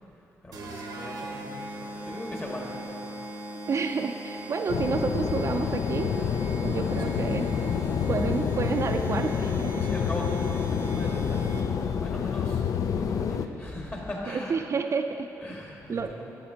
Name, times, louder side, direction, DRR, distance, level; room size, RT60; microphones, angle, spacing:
voice 1, 0.4-2.8 6.9-7.6 9.7-12.6 12.9-14.6 15.4-16.2, left 1 dB, 30° left, -2 dB, 1.6 m, -39 dB
sound 1, 0.5-11.9, right 1 dB, 85° right, 0.8 m, -39 dB
voice 2, 3.7-6.2 6.6-7.5 8.1-9.9 14.3-15.3 15.9-16.1, right 5 dB, 45° right, 5 dB, 0.4 m, -29 dB
sound 2, 4.7-13.5, left 7 dB, 60° left, 0.3 m, -28 dB
8.6 x 8.0 x 2.8 m, 2.9 s
cardioid pair, 65°, 7 cm